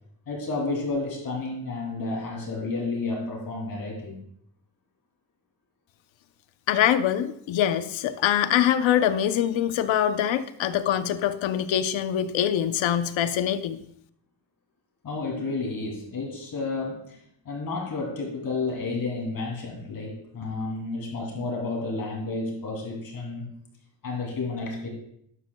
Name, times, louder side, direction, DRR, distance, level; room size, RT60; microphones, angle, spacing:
voice 1, 0.3-4.2 15.0-23.5 24.0-24.9, left 3 dB, 50° left, -1 dB, 2.8 m, -31 dB
voice 2, 6.7-13.8, left 10 dB, 75° left, 11 dB, 0.8 m, -24 dB
12.5 x 11.0 x 2.3 m, 0.71 s
cardioid pair, 150°, 46 cm